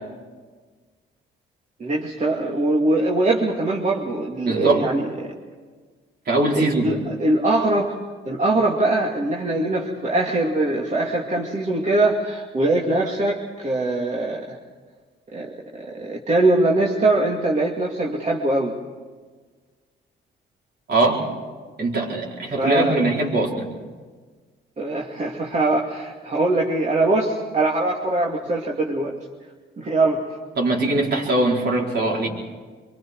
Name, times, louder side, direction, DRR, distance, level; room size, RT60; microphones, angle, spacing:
voice 1, 1.8-5.3 6.5-7.9 8.3-14.6 15.3-15.5 15.9-18.8 22.6-23.0 24.8-29.2 29.8-30.2, right 2 dB, 35° right, -3 dB, 2.4 m, -22 dB
voice 2, 4.4-4.8 6.3-6.9 20.9-21.2 21.8-23.7 30.6-32.3, right 2 dB, 55° right, -3 dB, 4.9 m, -21 dB
24.5 x 23.5 x 4.7 m, 1.5 s
cardioid pair, 90°, 20 cm